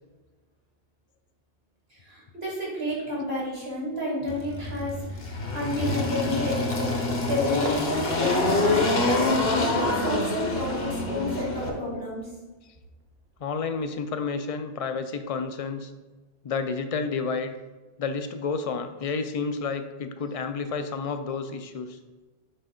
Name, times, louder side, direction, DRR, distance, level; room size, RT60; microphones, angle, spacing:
voice 1, 1.9-7.0 7.3-12.3, left 1 dB, 75° right, -5 dB, 2.6 m, -31 dB
Engine, 4.3-11.7, left 2 dB, 65° left, 1.3 m, -26 dB
Hammer / Wood, 7.1-7.3 7.6-10.5 11.0-12.0, right 1 dB, 50° right, 1.0 m, -37 dB
voice 2, 13.4-15.9 16.4-17.5 18.0-22.0, left 5 dB, 45° left, 8 dB, 0.5 m, -30 dB
6.4 x 5.1 x 3.8 m, 1.2 s
omnidirectional pair, 1.0 m